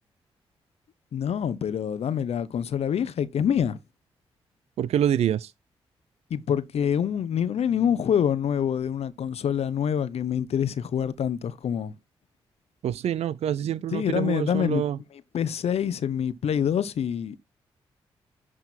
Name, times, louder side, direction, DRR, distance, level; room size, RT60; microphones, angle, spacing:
voice 1, 1.1-3.8 6.3-11.9 13.7-14.8 15.3-17.4, left 8 dB, 70° left, 0.8 m, -26 dB
voice 2, 4.8-5.5 12.8-15.0, right 10 dB, 70° right, 0.4 m, -26 dB
11.0 x 3.7 x 4.4 m
supercardioid pair, 50°, 11 cm